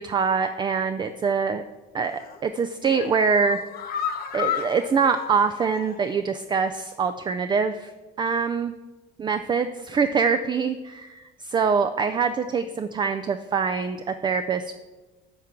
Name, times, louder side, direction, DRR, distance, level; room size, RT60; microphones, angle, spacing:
voice 1, 0.0-1.6 1.9-3.6 4.3-7.9 8.2-8.7 9.2-14.7, right 5 dB, 25° right, 10 dB, 0.4 m, -24 dB
sound 1, 2.0-2.4 2.8-6.2 6.5-6.6 7.0-7.1, left 9 dB, 55° left, 0.8 m, -33 dB
10.5 x 3.7 x 7.0 m, 1.2 s
cardioid pair, 120°, 19 cm